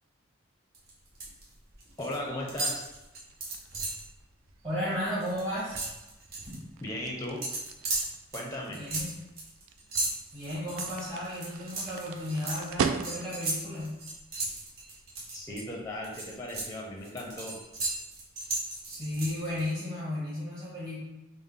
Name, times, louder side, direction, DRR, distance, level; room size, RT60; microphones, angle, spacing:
sound 1, 0.7-1.4 1.7-2.2 2.5-4.1 4.5-4.7 4.9-6.6 7.4-15.6 16.0-19.6, right 2 dB, 50° right, 1.1 m, -35 dB
voice 1, 2.0-2.9 6.8-7.4 8.3-8.8 15.3-17.5, left 1 dB, 15° left, -1 dB, 0.5 m, -37 dB
sound 2, 3.1-13.5, right 6 dB, 75° right, 0.3 m, -39 dB
voice 2, 4.6-5.8 6.5-6.7 8.7-9.1 10.3-13.9 18.9-21.0, left 1 dB, 25° right, -10 dB, 1.2 m, -34 dB
5.2 x 2.0 x 3.6 m, 1.0 s
head